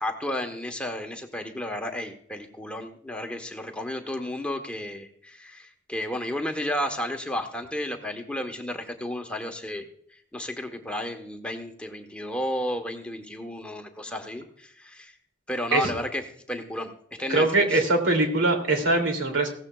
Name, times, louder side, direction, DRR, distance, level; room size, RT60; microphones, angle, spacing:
voice 1, 0.0-9.8 10.3-15.1 15.5-16.9 17.2-17.8, left 1 dB, 5° left, 3 dB, 1.1 m, -32 dB
voice 2, 17.3-19.5, right 2 dB, 70° right, 4 dB, 2.7 m, -22 dB
16.5 x 14.0 x 2.3 m, 0.62 s
head